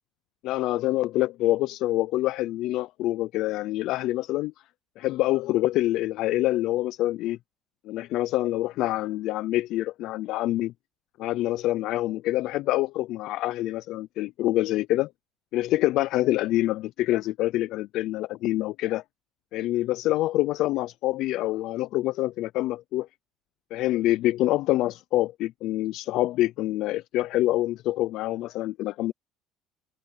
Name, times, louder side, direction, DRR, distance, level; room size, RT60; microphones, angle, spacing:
voice 1, 0.4-4.5 5.0-7.4 7.8-10.7 11.2-15.1 15.5-19.0 19.5-23.1 23.7-29.1, left 16 dB, 55° left, 0.4 m, -26 dB
cardioid pair, 160°, 0 cm